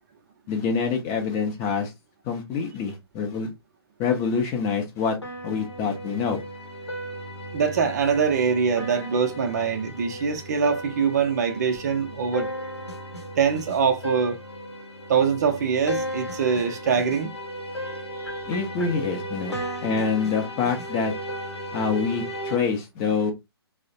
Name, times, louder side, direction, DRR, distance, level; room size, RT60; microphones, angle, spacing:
voice 1, 0.5-1.9 2.2-3.5 4.0-5.2 5.4-6.4 18.5-21.1 21.7-23.3, left 5 dB, 20° left, 0.5 m, -26 dB
sound 1, 5.2-22.6, equal, 85° left, 0.8 m, -35 dB
voice 2, 7.5-12.5 13.4-14.4 15.1-17.3 18.2-18.4, right 6 dB, 40° right, 0.5 m, -23 dB
3.0 x 2.0 x 2.6 m
figure-of-eight pair, 130°, 14 cm